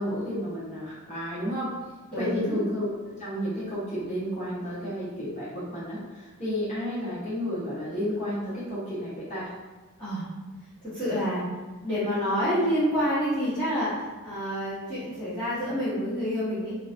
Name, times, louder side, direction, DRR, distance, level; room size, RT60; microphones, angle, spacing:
voice 1, 0.0-1.7 2.1-2.9 3.2-9.5, equal, 35° left, -9 dB, 1.0 m, -31 dB
voice 2, 2.1-2.6 10.0-10.2 10.9-11.4 11.8-13.9 14.2-16.7, equal, 5° left, -18 dB, 1.3 m, -27 dB
3.2 x 2.9 x 2.6 m, 1.2 s
head